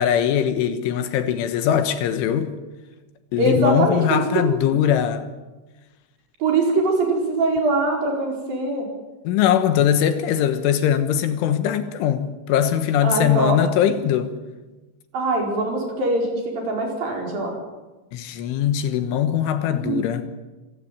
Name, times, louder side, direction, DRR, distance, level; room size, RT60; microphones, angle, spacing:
voice 1, 0.0-2.5 3.3-5.3 9.3-14.3 18.1-20.2, left 9 dB, 80° left, 3.6 m, -21 dB
voice 2, 3.4-4.8 6.4-8.9 13.0-13.6 15.1-17.5 19.7-20.0, right 2 dB, 45° right, 6.3 m, -22 dB
26.0 x 16.0 x 9.4 m
omnidirectional pair, 5.8 m